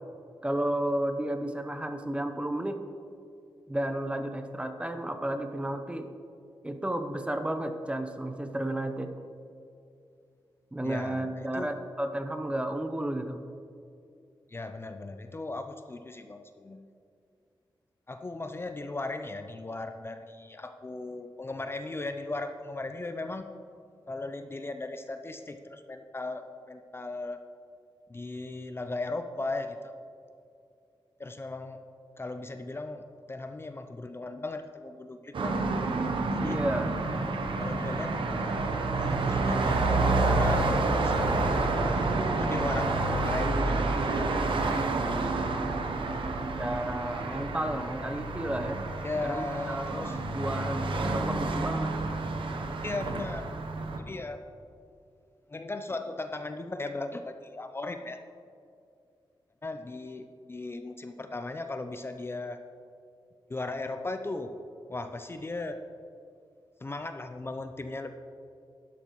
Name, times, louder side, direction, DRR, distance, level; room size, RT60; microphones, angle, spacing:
voice 1, 0.4-2.8 3.7-6.1 6.6-9.1 10.7-13.4 36.4-36.9 46.6-48.8 49.2-51.9, right 1 dB, 15° right, 7 dB, 0.8 m, -32 dB
voice 2, 10.8-11.7 14.5-16.9 18.1-23.4 24.1-27.4 28.1-29.9 31.2-31.8 32.2-35.5 36.3-36.6 37.6-38.2 39.0-41.6 42.3-45.0 49.0-50.2 52.8-53.5 54.0-54.4 55.5-58.2 59.6-62.6 63.5-64.6 64.9-65.8 66.8-68.1, left 2 dB, 25° left, 7 dB, 0.5 m, -37 dB
sound 1, 35.3-54.0, right 3 dB, 75° right, 0.9 m, -29 dB
11.5 x 11.0 x 3.1 m, 2.5 s
wide cardioid pair, 95°, 9 cm